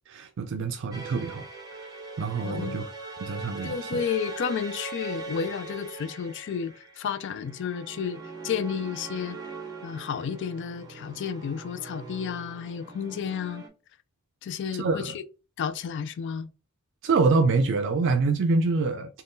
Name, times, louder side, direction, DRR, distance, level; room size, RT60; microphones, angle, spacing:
voice 1, 0.1-1.5 2.2-2.8 3.2-4.0 14.8-15.1 17.0-19.2, right 3 dB, 60° right, 0.4 m, -25 dB
sound 1, 0.9-13.7, right 3 dB, 20° right, 0.7 m, -41 dB
voice 2, 2.4-2.8 3.6-9.4 9.8-13.6 14.4-15.2 15.6-16.5, left 7 dB, 55° left, 0.3 m, -32 dB
3.5 x 2.2 x 2.5 m
head